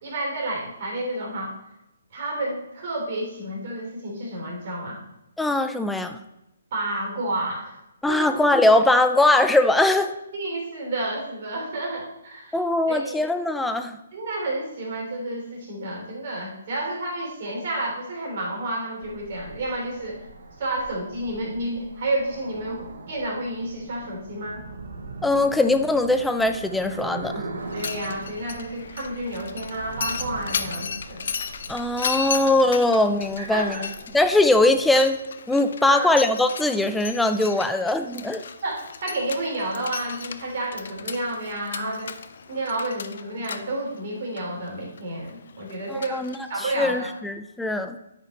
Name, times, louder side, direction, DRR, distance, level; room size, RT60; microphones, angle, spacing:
voice 1, 0.0-1.5 2.1-5.0 6.7-7.8 8.1-8.3 10.3-12.6 12.9-13.2 14.1-20.2 20.6-24.6 27.7-31.3 33.4-33.9 35.8-36.1 38.6-42.1 42.5-46.2 46.5-47.1, right 1 dB, 50° right, -1 dB, 3.2 m, -30 dB
voice 2, 5.4-6.2 8.0-10.1 12.5-14.0 25.2-27.3 31.7-33.9 34.1-35.2 35.5-38.4 45.9-48.0, left 2 dB, 5° left, 8 dB, 0.5 m, -21 dB
sound 1, 19.0-35.1, right 3 dB, 70° right, 1.1 m, -41 dB
Mechanisms, 27.6-47.2, left 6 dB, 60° left, 0.5 m, -36 dB
9.5 x 5.2 x 4.1 m, 0.89 s
figure-of-eight pair, 140°, 0 cm